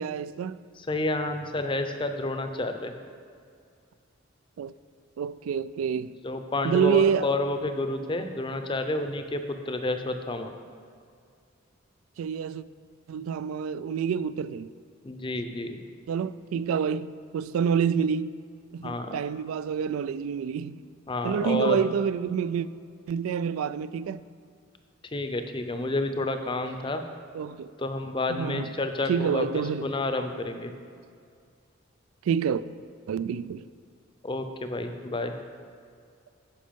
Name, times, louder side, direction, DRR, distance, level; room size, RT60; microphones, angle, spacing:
voice 1, 0.0-0.6 4.6-4.7 5.2-6.1 6.6-7.3 12.2-12.6 13.1-14.7 16.1-18.3 18.7-20.8 21.2-22.7 23.1-24.2 27.3-27.7 28.4-28.7 29.1-29.9 32.3-32.6 33.1-33.6, right 7 dB, 90° right, 0.3 m, -27 dB
voice 2, 0.8-2.9 6.2-10.5 15.0-15.8 18.8-19.2 21.1-21.8 25.1-27.0 27.8-30.7 34.2-35.3, left 2 dB, 25° left, 0.5 m, -30 dB
10.0 x 5.4 x 5.2 m
head